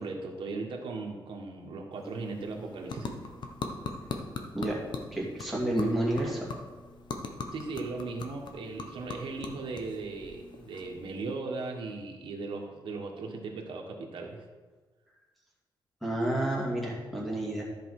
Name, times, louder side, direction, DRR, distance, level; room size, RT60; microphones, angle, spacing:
voice 1, 0.0-3.1 7.5-14.4, right 3 dB, 75° right, 1 dB, 1.6 m, -37 dB
sound 1, 1.9-11.4, left 4 dB, 60° left, 1.0 m, -41 dB
voice 2, 5.1-6.4 16.0-17.6, right 1 dB, ahead, -4 dB, 2.3 m, -30 dB
13.5 x 5.1 x 4.9 m, 1.3 s
wide cardioid pair, 160°, 9 cm